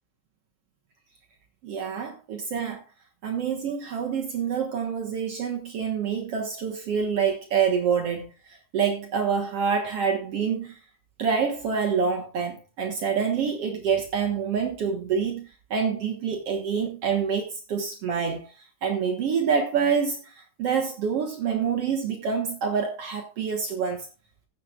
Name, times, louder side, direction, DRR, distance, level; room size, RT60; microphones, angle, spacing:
voice 1, 1.6-2.8 3.2-8.3 8.7-10.8 11.2-18.4 18.8-24.1, right 6 dB, 70° right, 1.5 m, -26 dB
15.0 x 8.4 x 2.4 m
omnidirectional pair, 4.6 m